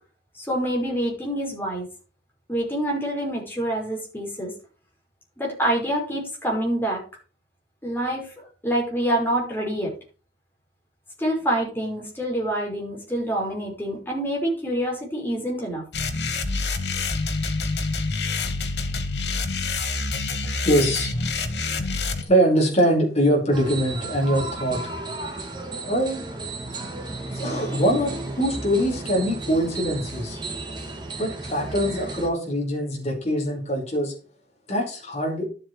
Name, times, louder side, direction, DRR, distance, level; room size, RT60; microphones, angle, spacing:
voice 1, 0.4-1.9 2.5-4.5 5.4-7.0 7.8-8.3 8.6-9.9 11.2-15.8, right 1 dB, 10° left, -2 dB, 5.2 m, -26 dB
sound 1, 15.9-22.2, left 3 dB, 70° left, 1.7 m, -27 dB
voice 2, 20.6-21.1 22.2-24.8 25.9-26.2 27.3-30.4 31.2-34.1 34.7-35.5, equal, 40° left, -1 dB, 5.2 m, -23 dB
sound 2, 23.5-32.3, right 2 dB, 25° right, 2.5 m, -33 dB
12.0 x 7.7 x 4.8 m, 0.36 s
head